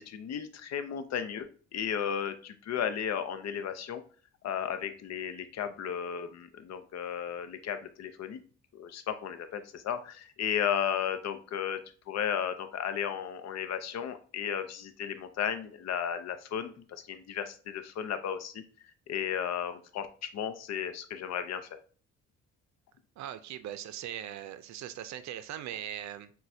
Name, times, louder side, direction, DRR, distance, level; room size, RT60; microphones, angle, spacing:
voice 1, 0.0-4.0 4.4-8.4 8.7-11.8 12.1-18.6 19.1-21.7, left 8 dB, 60° left, 0.6 m, -34 dB
voice 2, 23.2-26.3, right 11 dB, 70° right, 0.5 m, -40 dB
6.0 x 2.3 x 2.6 m
supercardioid pair, 70°, 29 cm